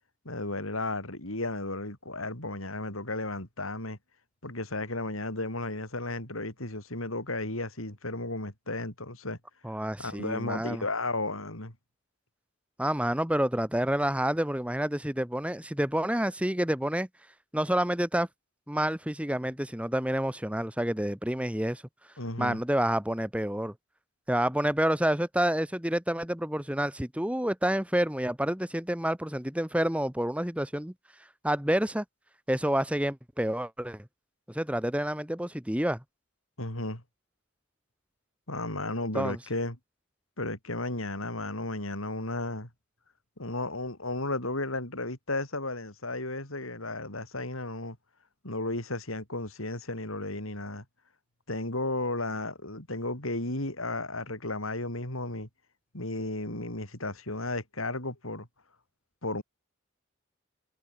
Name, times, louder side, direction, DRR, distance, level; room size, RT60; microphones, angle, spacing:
voice 1, 0.2-4.0 4.4-9.4 10.0-11.7 22.2-22.6 36.6-37.0 38.5-39.8 40.4-42.7 43.4-48.0 48.4-50.8 51.5-55.5 55.9-58.5 59.2-59.4, left 2 dB, 90° left, 7.5 m, -34 dB
voice 2, 9.6-10.8 12.8-17.1 17.5-18.3 18.7-21.8 22.4-23.7 24.3-30.9 31.4-32.0 32.5-34.0 34.5-36.0 39.1-39.4, right 1 dB, 5° right, 1.8 m, -28 dB
head